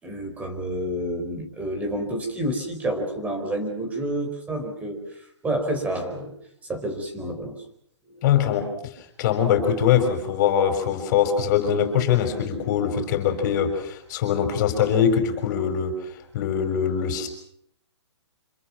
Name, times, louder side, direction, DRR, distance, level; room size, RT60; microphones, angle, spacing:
voice 1, 0.0-5.0 5.4-6.3 6.7-7.6 8.1-8.2, right 1 dB, 10° right, 5 dB, 4.6 m, -29 dB
voice 2, 8.2-8.9 9.2-15.9 16.3-17.3, left 8 dB, 40° left, 7 dB, 6.0 m, -22 dB
27.0 x 26.5 x 6.1 m, 0.67 s
hypercardioid pair, 150°, 15 cm